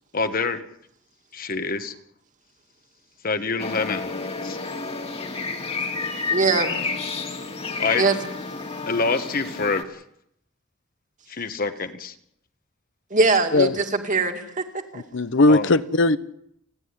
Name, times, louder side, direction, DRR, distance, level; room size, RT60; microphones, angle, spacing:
voice 1, 0.1-0.6 1.3-1.9 3.2-4.1 4.4-4.6 7.8-8.0 8.9-10.0 11.3-12.1 15.5-15.7, left 4 dB, 45° left, 9 dB, 1.3 m, -26 dB
sound 1, 3.6-9.8, left 4 dB, 30° left, 2.0 m, -30 dB
voice 2, 6.3-6.8 7.9-8.2 13.1-14.6 14.9-15.0, right 3 dB, 40° right, 5 dB, 2.3 m, -21 dB
voice 3, 14.9-16.2, left 2 dB, 60° left, 14 dB, 0.8 m, -18 dB
30.0 x 11.0 x 9.8 m, 0.75 s
head